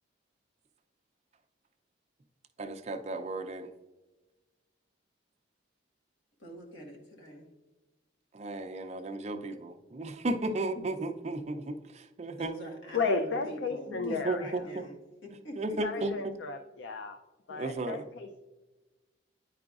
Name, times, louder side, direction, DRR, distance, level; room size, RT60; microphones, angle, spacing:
voice 1, 2.6-3.7 8.3-12.5 13.9-14.6 15.6-16.3 17.5-18.0, right 2 dB, 35° right, 8 dB, 0.4 m, -34 dB
voice 2, 6.4-7.5 10.4-10.9 12.4-14.9 15.2-15.8 16.2-16.3, equal, 80° left, 0 dB, 1.4 m, -45 dB
voice 3, 12.9-14.6 15.8-17.2 17.5-18.4, left 4 dB, 65° left, 7 dB, 0.4 m, -33 dB
9.6 x 4.9 x 2.4 m, 1.2 s
head